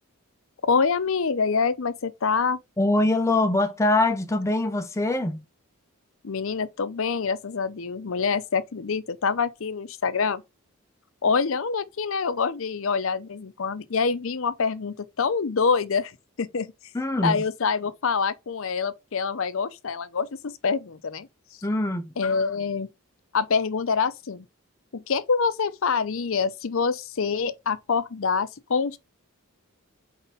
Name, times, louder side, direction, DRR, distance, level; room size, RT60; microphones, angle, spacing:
voice 1, 0.7-2.6 6.2-10.4 11.2-16.1 16.4-16.7 17.2-21.3 22.2-22.9 23.3-24.5 24.9-29.0, left 5 dB, 65° left, 0.6 m, -26 dB
voice 2, 2.8-5.4 16.9-17.4 21.6-22.0, left 2 dB, 15° left, 0.5 m, -23 dB
4.6 x 4.0 x 5.5 m
head